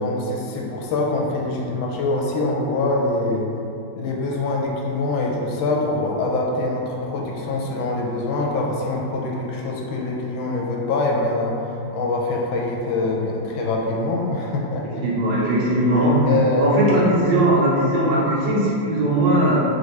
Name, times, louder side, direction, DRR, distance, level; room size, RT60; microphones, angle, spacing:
voice 1, 0.0-3.5 4.0-14.9 16.3-16.8, left 2 dB, 80° left, -1 dB, 1.4 m, -24 dB
voice 2, 15.0-16.3 16.6-19.6, right 1 dB, 70° right, -6 dB, 1.4 m, -19 dB
4.4 x 2.6 x 3.2 m, 2.7 s
omnidirectional pair, 2.2 m